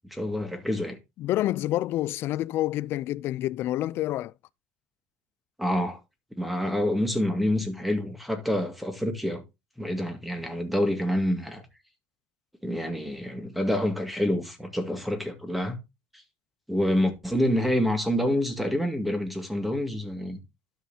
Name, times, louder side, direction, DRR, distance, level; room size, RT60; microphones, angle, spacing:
voice 1, 0.1-1.0 5.6-6.0 6.4-9.4 9.8-11.6 12.6-15.8 16.7-20.4, left 1 dB, ahead, 2.1 m, -27 dB
voice 2, 1.2-4.3, left 14 dB, 55° left, 0.4 m, -28 dB
12.5 x 5.8 x 2.8 m
cardioid pair, 130°, 5 cm